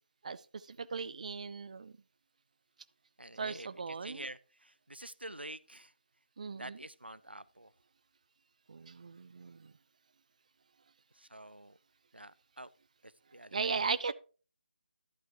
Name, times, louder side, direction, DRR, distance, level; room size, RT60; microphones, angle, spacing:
voice 1, 0.7-1.9 3.4-4.2 6.4-6.8 8.7-9.6 13.5-14.1, right 5 dB, 45° right, 0.4 m, -37 dB
voice 2, 3.2-5.9 6.5-7.7 11.2-11.8 12.1-12.7 13.0-14.1, right 1 dB, 90° right, 0.6 m, -48 dB
11.5 x 7.9 x 3.0 m
figure-of-eight pair, 155°, 5 cm